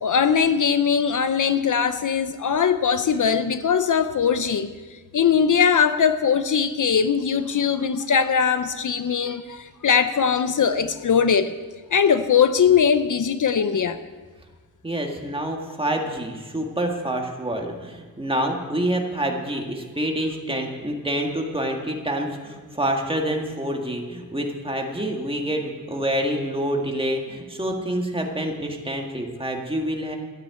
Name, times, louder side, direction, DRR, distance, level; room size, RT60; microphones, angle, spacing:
voice 1, 0.0-4.7 5.1-11.5 11.9-14.0, left 7 dB, 60° left, 11 dB, 0.6 m, -20 dB
voice 2, 14.8-30.2, right 1 dB, 15° right, 1 dB, 1.7 m, -27 dB
13.5 x 8.6 x 8.2 m, 1.4 s
wide cardioid pair, 140°, 35 cm